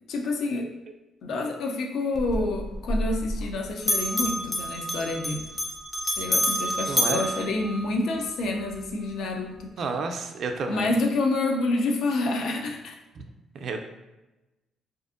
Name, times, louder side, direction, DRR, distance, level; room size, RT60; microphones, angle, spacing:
voice 1, 0.1-0.7 1.2-5.4 6.2-9.7 10.7-13.0, left 2 dB, 75° left, 2 dB, 0.4 m, -28 dB
Bell, 2.1-3.5 3.8-8.3, equal, 15° left, 0.5 m, -28 dB
voice 2, 6.9-7.3 9.8-10.9 13.2-13.3 13.5-13.8, right 4 dB, 60° right, 5 dB, 0.3 m, -31 dB
2.5 x 2.4 x 2.4 m, 1.0 s
cardioid pair, 90°, 0 cm